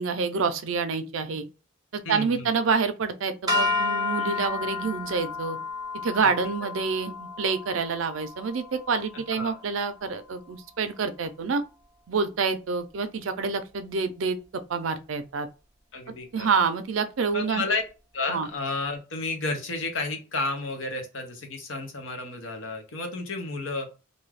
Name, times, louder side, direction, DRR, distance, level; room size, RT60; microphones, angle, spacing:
voice 1, 0.0-1.5 1.9-5.6 6.0-11.6 12.1-15.5 16.3-17.6 18.3-18.5, right 5 dB, 80° right, 0.5 m, -27 dB
voice 2, 2.0-2.5 6.2-6.3 9.3-9.6 15.9-16.6 17.3-17.8 18.1-23.9, left 3 dB, 75° left, 0.8 m, -31 dB
sound 1, 3.5-9.8, left 4 dB, 20° right, 0.5 m, -31 dB
2.6 x 2.3 x 3.2 m
head